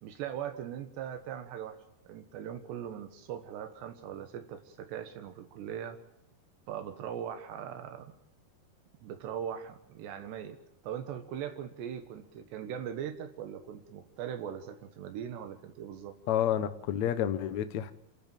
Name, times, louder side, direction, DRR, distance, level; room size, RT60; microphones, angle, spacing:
voice 1, 0.0-6.0 6.7-8.1 9.0-10.6 10.8-16.2, right 9 dB, 85° right, 7 dB, 3.7 m, -40 dB
voice 2, 16.3-17.9, left 10 dB, 70° left, 11 dB, 1.8 m, -29 dB
28.0 x 13.0 x 9.0 m, 0.81 s
omnidirectional pair, 4.8 m